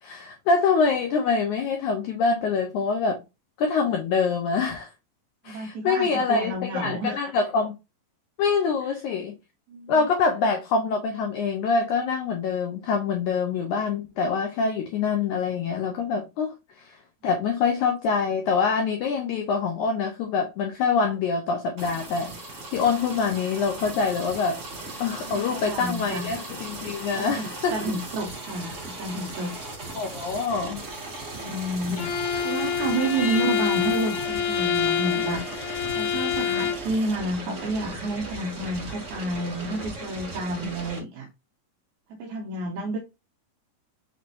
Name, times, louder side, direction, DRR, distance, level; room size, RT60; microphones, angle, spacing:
voice 1, 0.0-3.2 3.6-4.9 5.4-7.8 8.4-9.3 9.9-17.0 17.2-22.3 22.7-24.6 25.0-27.8 29.9-30.8 31.9-32.1 32.3-32.4 40.6-40.7, left 5 dB, 85° left, 1.7 m, -25 dB
voice 2, 5.4-7.2 9.7-10.1 25.3-26.4 27.1-29.6 31.3-35.6 35.9-41.3 42.1-43.0, right 2 dB, 80° right, 1.7 m, -30 dB
sound 1, 21.8-41.0, right 2 dB, 60° right, 0.7 m, -37 dB
Bowed string instrument, 32.0-36.9, left 8 dB, 70° left, 2.1 m, -26 dB
5.9 x 3.1 x 2.6 m
omnidirectional pair, 4.2 m